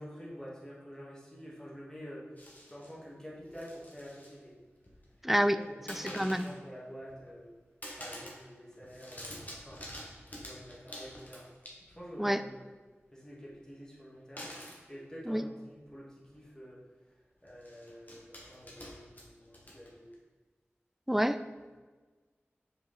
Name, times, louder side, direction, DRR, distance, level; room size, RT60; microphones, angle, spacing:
voice 1, 0.0-4.5 5.3-7.5 8.0-9.8 10.4-11.5 11.9-12.7 13.1-14.5 14.9-16.8 17.4-20.1 21.5-21.6, equal, 15° left, -5 dB, 2.0 m, -48 dB
sound 1, 2.4-2.9 3.4-4.4 4.6-5.2 5.9-6.6 7.0-7.5 7.8-8.5 8.7-12.1 14.4-14.8 15.8-15.9 16.2-16.4 17.5-20.1, equal, 40° left, 1.5 m, -47 dB
voice 2, 5.2-5.6 5.9-6.5 12.2-12.4 15.3-15.4 21.1-21.4, equal, 5° right, 10 dB, 0.3 m, -28 dB
5.6 x 4.8 x 4.0 m, 1.4 s
wide cardioid pair, 60°, 5 cm